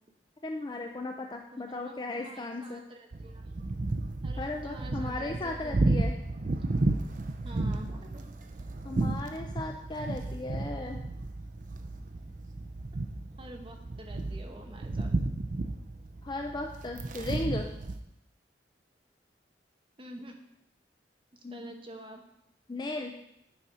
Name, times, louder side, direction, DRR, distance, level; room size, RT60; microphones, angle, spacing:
voice 1, 0.4-2.8 4.4-6.2 8.8-11.0 16.2-17.7 21.4-21.8 22.7-23.2, left 2 dB, 25° left, 3 dB, 0.4 m, -36 dB
voice 2, 1.6-3.5 4.2-6.1 7.4-8.3 13.4-15.1 20.0-20.4 21.5-22.2, right 1 dB, 30° right, 2 dB, 0.9 m, -47 dB
sound 1, 3.1-18.0, right 2 dB, 45° right, 0.5 m, -33 dB
8.7 x 4.2 x 4.8 m, 0.80 s
head